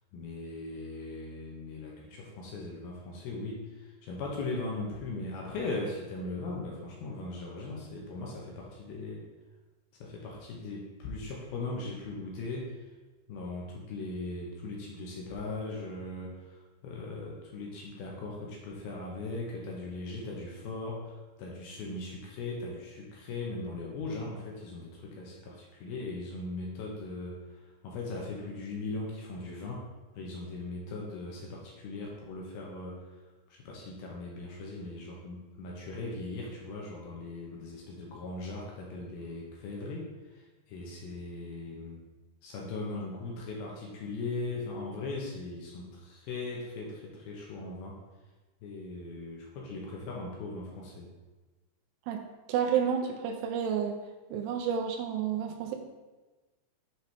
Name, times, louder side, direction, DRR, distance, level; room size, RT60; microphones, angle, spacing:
voice 1, 0.1-9.3 10.0-12.8 13.3-29.8 30.1-33.1 33.5-42.0 42.4-47.9 48.6-51.1, left 2 dB, 75° left, -2 dB, 2.5 m, -39 dB
voice 2, 52.5-54.0 54.3-55.8, right 8 dB, 80° right, 3 dB, 2.5 m, -30 dB
7.4 x 5.5 x 3.4 m, 1.2 s
omnidirectional pair, 5.0 m